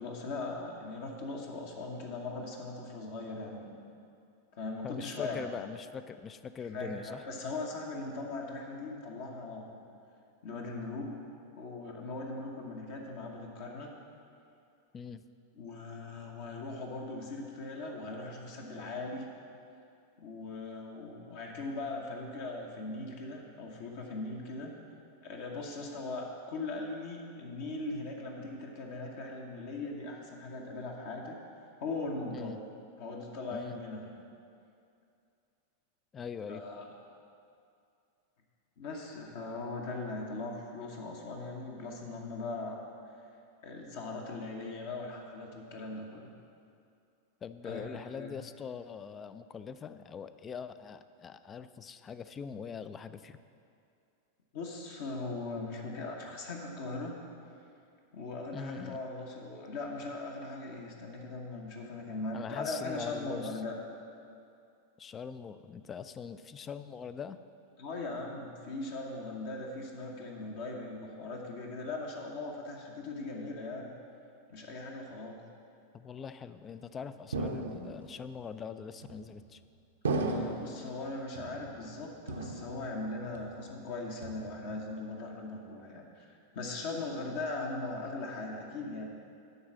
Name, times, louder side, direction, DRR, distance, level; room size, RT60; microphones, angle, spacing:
voice 1, 0.0-3.7 4.5-5.5 6.7-9.7 10.4-11.2 11.6-13.9 15.6-19.2 20.2-24.7 25.2-31.4 31.8-32.6 33.0-34.1 36.5-36.8 38.8-42.8 43.6-46.3 47.6-48.3 54.5-57.2 58.1-63.7 67.8-73.9 74.5-75.4 80.0-89.0, left 2 dB, 50° left, 0 dB, 1.1 m, -39 dB
voice 2, 4.8-7.2 14.9-15.2 32.3-32.6 33.5-33.8 36.1-36.6 47.4-53.4 58.5-59.0 62.3-63.6 65.0-67.4 75.9-79.6, left 6 dB, 25° left, 12 dB, 0.3 m, -42 dB
sound 1, 77.3-78.2 79.0-79.5 80.0-80.8 81.4-82.0 82.3-83.1 83.3-83.8 84.2-84.8, right 3 dB, 65° right, 0.7 m, -36 dB
11.0 x 4.0 x 7.4 m, 2.5 s
figure-of-eight pair, 90°, 0 cm